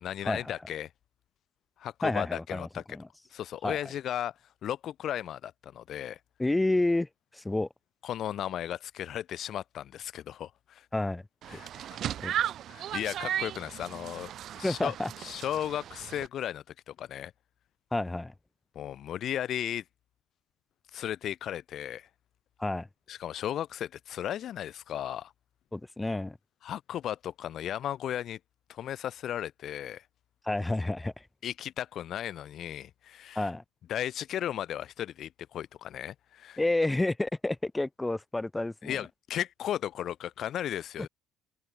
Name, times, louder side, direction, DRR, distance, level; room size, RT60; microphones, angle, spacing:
voice 1, 0.0-0.9 1.8-2.8 3.3-4.3 4.6-6.2 8.0-10.8 11.5-11.7 12.7-14.3 14.6-17.3 18.7-19.8 20.9-22.1 23.1-25.3 26.6-28.4 28.7-30.0 31.4-33.5 33.9-36.6 38.8-41.1, left 11 dB, 55° left, 1.1 m, -35 dB
voice 2, 2.0-3.1 3.6-3.8 6.4-7.1 7.3-7.7 10.9-11.2 11.5-12.3 14.6-15.1 17.9-18.3 22.6-22.9 25.7-26.4 30.4-31.2 33.3-33.6 36.6-39.0, left 2 dB, 10° left, 1.4 m, -30 dB
sound 1, 11.4-16.3, right 11 dB, 55° right, 1.1 m, -36 dB
hypercardioid pair, 65°, 0 cm